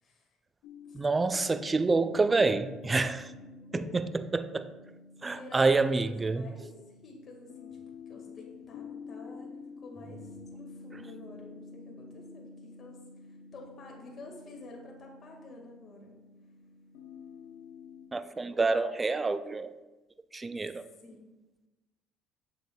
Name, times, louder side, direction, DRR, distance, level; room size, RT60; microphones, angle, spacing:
sound 1, 0.6-18.1, left 4 dB, 85° left, 0.6 m, -49 dB
voice 1, 0.9-3.3 3.7-4.7 5.2-6.5 18.1-19.7 20.3-20.9, right 3 dB, 20° right, 12 dB, 0.3 m, -27 dB
voice 2, 3.2-3.9 5.2-6.7 7.0-16.1 21.0-21.3, left 2 dB, 40° left, 0 dB, 1.7 m, -50 dB
8.0 x 6.8 x 2.3 m, 1.1 s
cardioid pair, 110°, 0 cm